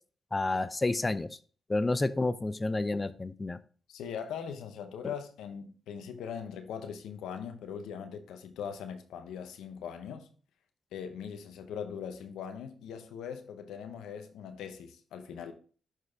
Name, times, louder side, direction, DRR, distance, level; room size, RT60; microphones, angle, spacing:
voice 1, 0.3-1.3 1.7-3.6, left 2 dB, 25° left, 0.4 m, -29 dB
voice 2, 3.9-10.3 10.9-15.5, left 7 dB, 85° left, 0.7 m, -41 dB
6.6 x 4.6 x 3.5 m
supercardioid pair, 55°, 0 cm